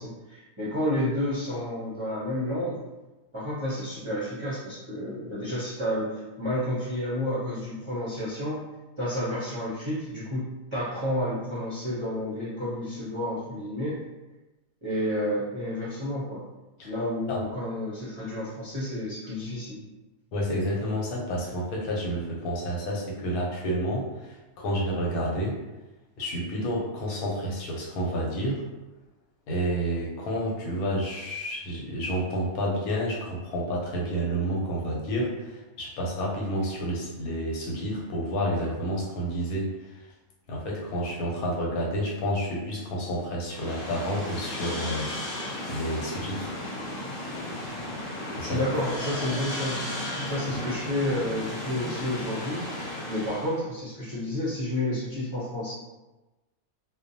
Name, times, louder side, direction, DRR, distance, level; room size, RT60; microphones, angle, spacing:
voice 1, 0.0-2.8 3.3-14.1 14.8-16.4 16.8-19.8 48.4-49.8 50.2-52.7 53.1-55.7, left 1 dB, 35° right, -11 dB, 0.5 m, -30 dB
voice 2, 20.3-25.6 26.2-28.6 29.5-39.7 40.5-46.5 48.3-48.6, equal, 80° left, -3 dB, 1.1 m, -30 dB
sound 1, 43.4-53.6, left 1 dB, 30° left, 0.6 m, -34 dB
2.5 x 2.1 x 2.6 m, 1.1 s
omnidirectional pair, 1.5 m